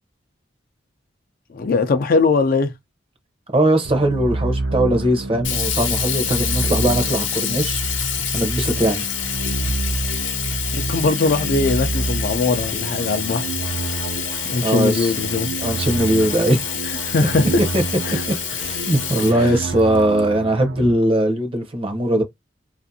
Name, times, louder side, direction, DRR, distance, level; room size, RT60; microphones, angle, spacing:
voice 1, 1.5-2.7 10.7-13.8 14.4-15.5 16.9-17.4 18.0-18.2 19.3-19.5, left 3 dB, 50° left, 0.4 m, -21 dB
voice 2, 3.5-7.8 8.3-9.0 14.6-15.1 15.6-16.6 17.6-17.8 18.6-22.2, right 1 dB, 30° right, 0.7 m, -20 dB
sound 1, 3.8-20.9, right 2 dB, 70° right, 0.6 m, -28 dB
Sink (filling or washing), 5.4-20.2, left 8 dB, 70° left, 0.7 m, -27 dB
2.5 x 2.5 x 2.7 m
head